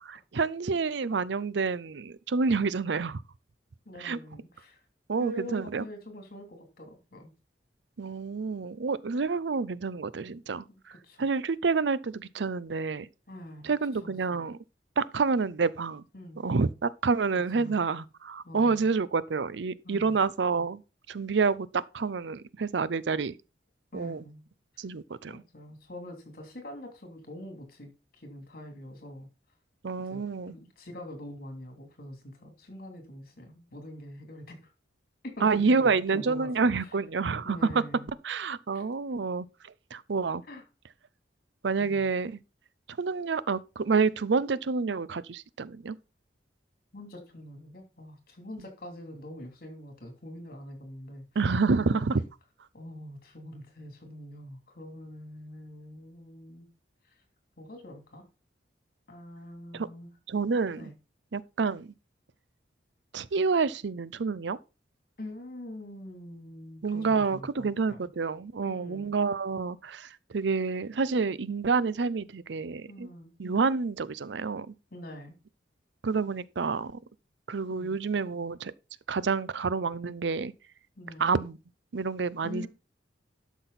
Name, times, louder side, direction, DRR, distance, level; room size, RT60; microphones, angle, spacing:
voice 1, 0.1-3.2 4.0-4.2 5.1-5.8 8.0-13.1 13.6-14.6 15.0-16.0 16.4-20.8 21.1-23.3 23.9-24.2 24.8-25.4 29.8-30.5 35.4-37.8 38.2-40.4 41.6-42.4 43.0-46.0 51.4-52.2 59.7-59.9 60.3-60.9 61.3-61.9 63.1-64.6 66.8-73.1 73.4-74.7 76.0-77.0 77.5-78.7 79.1-80.5 81.2-81.6 81.9-82.7, right 4 dB, 70° right, 0.6 m, -28 dB
voice 2, 3.8-4.8 5.2-7.3 10.7-11.3 13.3-13.7 14.0-14.4 16.1-16.4 17.3-17.8 18.4-18.9 19.8-20.2 23.9-24.4 24.7-24.8 25.3-29.3 30.0-34.7 35.2-36.9 37.4-38.1 38.7-38.8 40.5-40.6 41.8-42.1 46.9-51.2 52.1-52.2 52.7-56.7 57.6-58.2 59.1-60.1 60.8-60.9 65.2-68.1 68.6-69.1 72.9-73.3 74.9-75.3 77.7-78.0 81.0-81.3 82.4-82.7, left 1 dB, 55° left, 3.1 m, -44 dB
12.0 x 6.1 x 4.1 m
head